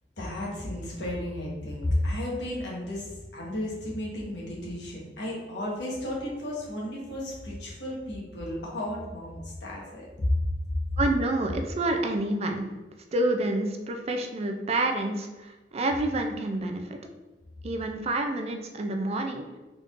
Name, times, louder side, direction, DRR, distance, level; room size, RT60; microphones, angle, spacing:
voice 1, 0.2-10.3, left 1 dB, 75° left, -4 dB, 1.2 m, -33 dB
voice 2, 11.0-12.7 13.1-17.0 17.6-19.4, right 2 dB, 35° right, 4 dB, 0.4 m, -28 dB
4.0 x 3.6 x 2.5 m, 1.1 s
head